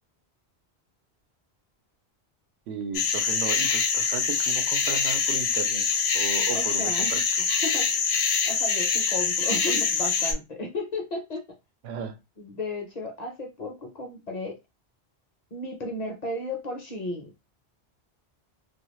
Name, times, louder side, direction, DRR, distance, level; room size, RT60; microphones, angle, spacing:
voice 1, 2.7-5.9 6.1-7.5 11.8-12.2, right 6 dB, 85° right, 0.8 m, -35 dB
sound 1, 2.9-10.3, left 6 dB, 75° left, 0.9 m, -25 dB
voice 2, 6.5-7.2 7.6-8.1 8.5-11.4 12.4-14.6 15.5-17.3, left 1 dB, 45° left, 0.6 m, -34 dB
2.3 x 2.3 x 3.0 m
omnidirectional pair, 1.1 m